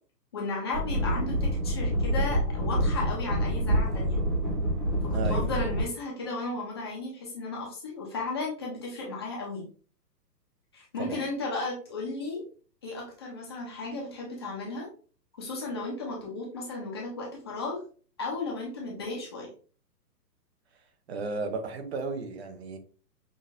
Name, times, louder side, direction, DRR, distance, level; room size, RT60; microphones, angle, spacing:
voice 1, 0.3-4.2 5.1-9.7 10.7-12.4 12.8-14.9 15.4-17.8 18.2-19.5, left 3 dB, 15° left, 0.5 m, -34 dB
sound 1, 0.7-5.8, equal, 10° right, 0.9 m, -27 dB
voice 2, 5.1-5.5 11.0-11.2 21.1-22.8, right 4 dB, 40° right, 0.7 m, -34 dB
6.4 x 2.5 x 2.5 m
hypercardioid pair, 155°, 50 cm